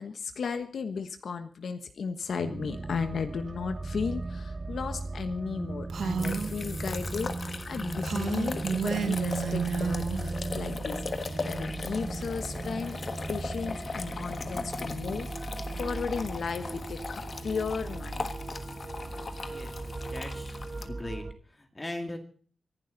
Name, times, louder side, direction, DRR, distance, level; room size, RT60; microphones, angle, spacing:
voice 1, 0.0-11.0 11.4-12.9 13.3-18.3, left 5 dB, 65° left, 8 dB, 1.2 m, -35 dB
sound 1, 2.4-21.3, right 2 dB, 25° right, 1.1 m, -37 dB
sound 2, 5.9-20.9, left 4 dB, 35° left, 1.4 m, -39 dB
Female speech woman speaking, 5.9-6.5 8.0-10.3, right 6 dB, 65° right, 1.2 m, -30 dB
voice 2, 19.5-20.6 20.9-22.2, left 1 dB, 15° left, 5 dB, 2.0 m, -40 dB
25.0 x 11.5 x 4.0 m, 0.43 s
wide cardioid pair, 165°, 0 cm